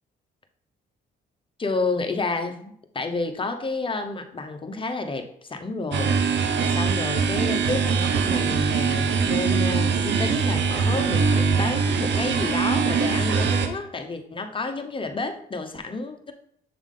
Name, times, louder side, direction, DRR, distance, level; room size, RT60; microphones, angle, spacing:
voice 1, 1.6-16.3, left 3 dB, 25° left, 6 dB, 0.8 m, -30 dB
sound 1, 5.9-13.7, right 5 dB, 65° right, 0.8 m, -22 dB
7.3 x 3.4 x 3.8 m, 0.65 s
cardioid pair, 90°, 20 cm